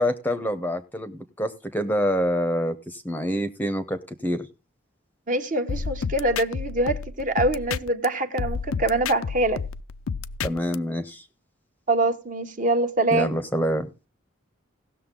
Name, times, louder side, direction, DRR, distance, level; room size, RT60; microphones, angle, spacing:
voice 1, 0.0-4.5 10.4-11.3 13.1-13.9, equal, 10° left, 0.7 m, -26 dB
voice 2, 5.3-9.6 11.9-13.3, right 2 dB, 40° right, 1.1 m, -24 dB
sound 1, 5.7-8.1 8.4-10.8, left 5 dB, 90° left, 0.5 m, -30 dB
17.5 x 6.7 x 3.8 m
head